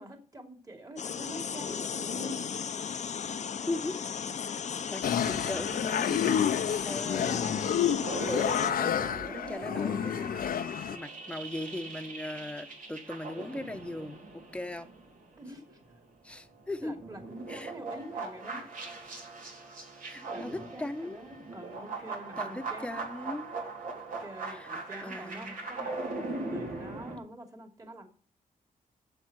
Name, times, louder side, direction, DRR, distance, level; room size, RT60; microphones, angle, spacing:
voice 1, 0.0-2.5 10.5-10.7 15.4-15.8 16.8-18.6 20.0-23.0 24.2-28.1, right 1 dB, 25° right, 4 dB, 2.7 m, -46 dB
sound 1, 1.0-8.7, left 7 dB, 55° left, 0.8 m, -35 dB
voice 2, 3.7-4.0 4.4-4.5 4.9-6.5 6.8-7.7 8.2-10.4 10.9-14.9 16.2-16.9 17.5-17.7 20.0-21.3 22.4-23.5 24.5-24.7 25.0-25.6, left 1 dB, 10° left, 7 dB, 1.1 m, -39 dB
sound 2, 5.0-11.0, left 9 dB, 80° left, 0.8 m, -30 dB
sound 3, 8.0-15.9 16.3-27.2, right 3 dB, 65° right, 3.7 m, -40 dB
8.0 x 7.8 x 7.9 m, 0.40 s
cardioid pair, 105°, 15 cm